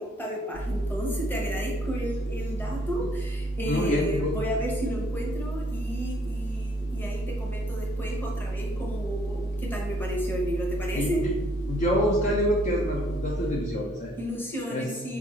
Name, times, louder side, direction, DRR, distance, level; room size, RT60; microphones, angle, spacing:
voice 1, 0.0-11.2 14.2-15.2, equal, 10° left, -2 dB, 0.8 m, -33 dB
sound 1, 0.5-13.5, right 2 dB, 60° left, 0.9 m, -31 dB
voice 2, 3.7-4.4 10.9-11.3 11.7-14.1 14.7-14.9, equal, 35° left, -2 dB, 0.4 m, -27 dB
4.8 x 3.5 x 3.1 m, 1.2 s
head